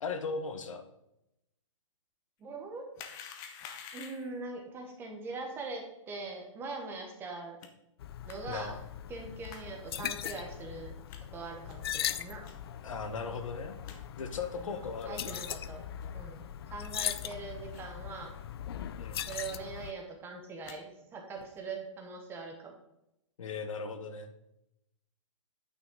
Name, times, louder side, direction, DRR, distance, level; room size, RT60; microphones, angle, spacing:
voice 1, 0.0-0.8 8.5-8.8 12.8-13.8 14.2-15.4 19.0-19.2 23.4-24.3, left 4 dB, 75° left, 8 dB, 1.1 m, -37 dB
voice 2, 2.4-2.9 3.9-7.6 8.3-8.7 9.1-10.9 11.3-12.4 14.6-15.9 16.1-18.3 19.3-22.7, right 3 dB, 15° right, 2 dB, 1.1 m, -42 dB
sound 1, 2.9-4.4 7.6-7.7 8.3-8.4 9.4-9.6 10.2-10.3 11.1-11.2 11.7-11.9 12.4-12.5 13.1-13.2 13.4-13.5 13.8-14.0 14.5-14.6 15.2-15.5 16.0-16.1 16.6-17.1 17.7-17.9 18.2-18.3 18.6-18.8 19.3-19.4 19.6-20.0 20.4-20.8 21.3-21.6, left 7 dB, 20° left, 0.7 m, -49 dB
sound 2, 8.0-19.9, left 10 dB, 50° left, 0.4 m, -40 dB
9.2 x 5.9 x 3.8 m, 0.86 s
hypercardioid pair, 155°, 17 cm